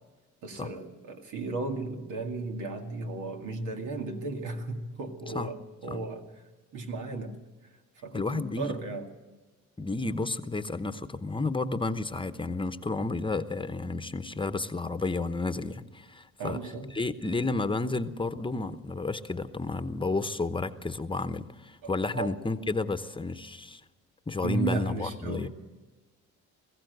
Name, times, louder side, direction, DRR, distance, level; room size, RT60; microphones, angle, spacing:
voice 1, 0.4-6.2 6.7-7.3 8.0-9.1 16.4-16.9 21.8-22.3 24.4-25.5, right 3 dB, 85° right, 4 dB, 2.3 m, -34 dB
voice 2, 8.1-8.7 9.8-16.6 16.9-23.8 24.3-25.5, left 3 dB, 15° left, 10 dB, 0.9 m, -31 dB
21.0 x 15.5 x 8.0 m, 1.2 s
cardioid pair, 90°, 30 cm